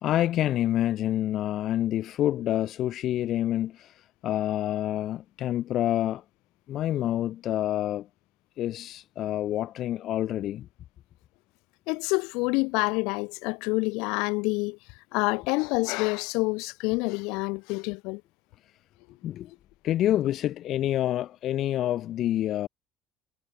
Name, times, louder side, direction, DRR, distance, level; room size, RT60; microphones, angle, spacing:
voice 1, 0.0-6.2 6.7-8.1 8.6-10.7 19.2-19.5 19.8-22.7, left 12 dB, 45° left, 0.5 m, -27 dB
voice 2, 11.9-14.8 15.1-18.2, left 28 dB, 75° left, 1.5 m, -27 dB
cardioid pair, 165°, 0 cm